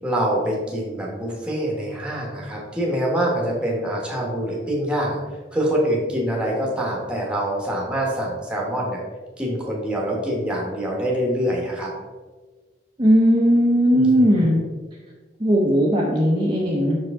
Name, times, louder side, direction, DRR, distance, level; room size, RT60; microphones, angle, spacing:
voice 1, 0.0-5.2 5.5-9.0 9.4-11.9 13.9-14.5, equal, 5° right, -2 dB, 1.3 m, -25 dB
voice 2, 13.0-14.6 15.4-17.0, equal, 25° right, -4 dB, 0.7 m, -17 dB
5.8 x 4.7 x 3.7 m, 1.4 s
head